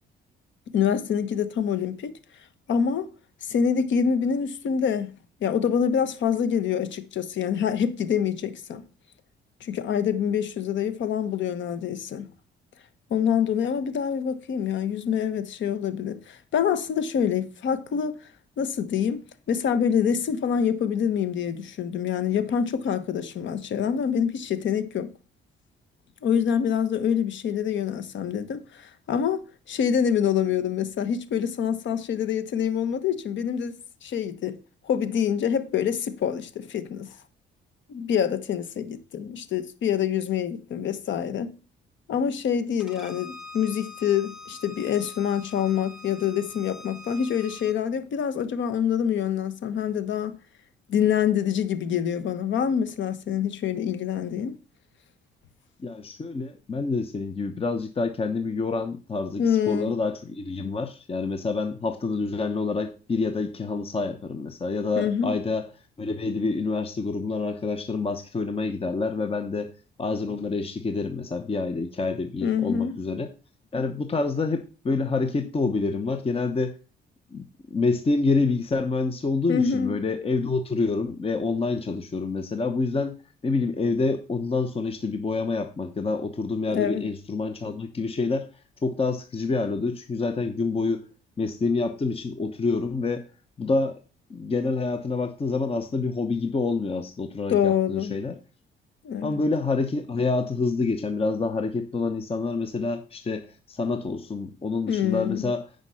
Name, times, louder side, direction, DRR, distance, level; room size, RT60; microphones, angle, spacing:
voice 1, 0.7-2.1 2.7-3.1 3.4-5.1 5.4-8.8 9.6-12.3 13.1-18.2 18.6-25.1 26.2-29.4 29.7-34.6 34.8-37.1 37.9-41.5 42.1-50.3 50.9-54.6 59.4-59.9 64.9-65.4 72.4-73.0 79.5-79.9 86.7-87.1 97.5-98.1 99.0-99.4 104.9-105.5, left 8 dB, 70° left, 1.2 m, -26 dB
Bowed string instrument, 42.8-47.8, left 3 dB, ahead, 1.3 m, -44 dB
voice 2, 55.8-65.7 66.0-69.7 70.0-73.3 73.7-76.8 77.3-83.2 83.4-88.5 88.8-91.1 91.4-93.2 93.6-94.0 94.3-98.4 99.2-105.6, left 3 dB, 30° left, 0.9 m, -27 dB
9.7 x 5.2 x 5.6 m
cardioid pair, 90°, 20 cm